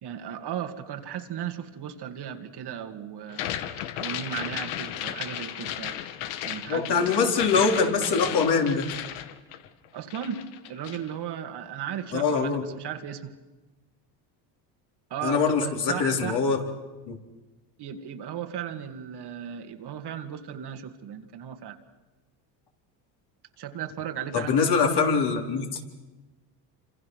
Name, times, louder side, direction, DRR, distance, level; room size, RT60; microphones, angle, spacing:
voice 1, 0.0-3.5 3.9-6.0 6.4-7.6 9.9-13.4 15.1-16.4 17.8-21.8 23.6-25.0, right 9 dB, 50° right, 7 dB, 2.2 m, -36 dB
sound 1, 3.3-9.9 10.1-11.1, left 11 dB, 70° left, 1.7 m, -35 dB
voice 2, 6.7-8.9 12.1-12.6 15.2-16.6 17.1-17.2 24.3-25.8, left 5 dB, 55° left, 2 dB, 4.1 m, -23 dB
27.5 x 26.5 x 6.4 m, 1.1 s
supercardioid pair, 90°, 50 cm